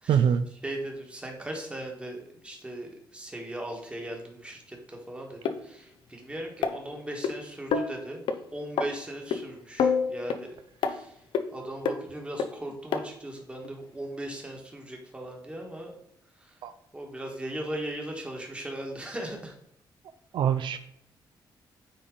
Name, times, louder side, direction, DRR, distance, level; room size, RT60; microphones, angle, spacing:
voice 1, 0.1-0.4 16.6-16.7 20.3-20.8, right 8 dB, 75° right, 10 dB, 0.4 m, -23 dB
voice 2, 0.6-10.5 10.8-11.2 11.5-15.9 16.4-16.6 16.9-19.5, right 1 dB, 15° right, 1 dB, 1.6 m, -38 dB
sound 1, 5.4-5.5 6.6-7.3 7.7-7.9 8.3-8.4 8.8-8.9 9.3-9.4 9.8-10.4 10.8-10.9 11.3-11.4 11.8-12.0 12.4-12.5 12.9-13.0 13.6-13.7, left 6 dB, 85° left, 0.7 m, -26 dB
9.4 x 4.1 x 3.8 m, 0.76 s
cardioid pair, 135°, 8 cm